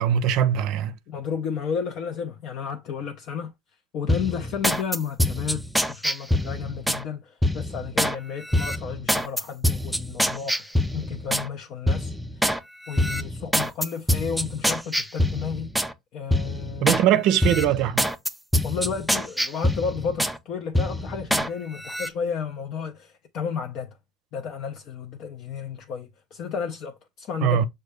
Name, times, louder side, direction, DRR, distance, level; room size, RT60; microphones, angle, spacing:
voice 1, 0.0-0.9 16.8-18.1 27.4-27.7, right 10 dB, 60° right, 0.5 m, -21 dB
voice 2, 1.1-3.5 3.9-12.5 12.9-15.8 16.1-17.0 18.6-24.0 24.3-27.7, left 6 dB, 50° left, 0.5 m, -32 dB
sound 1, 4.1-7.0 7.4-8.2 8.5-11.5 11.9-12.6 12.9-15.9 16.3-17.0 17.4-20.4 20.7-21.5 21.8-22.1, equal, ahead, 0.3 m, -25 dB
6.4 x 2.2 x 3.3 m
supercardioid pair, 125°, 0 cm